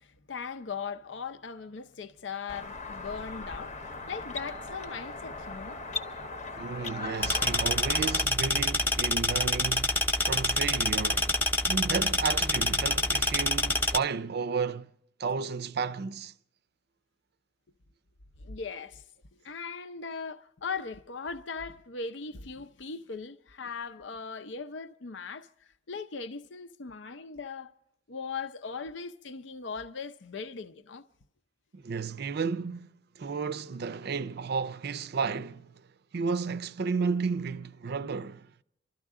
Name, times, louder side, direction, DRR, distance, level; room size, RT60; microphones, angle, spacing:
voice 1, 0.0-5.8 18.4-19.0 19.3-27.7 28.1-31.0, left 5 dB, 70° left, 0.6 m, -39 dB
sound 1, 2.5-8.2, left 3 dB, 40° left, 0.8 m, -39 dB
voice 2, 6.6-11.4 11.7-14.9 15.2-16.3 31.7-35.7 36.1-38.5, right 5 dB, 60° right, 0.5 m, -32 dB
sound 2, 7.2-14.0, left 2 dB, 10° left, 0.7 m, -27 dB
28.5 x 13.0 x 3.7 m
head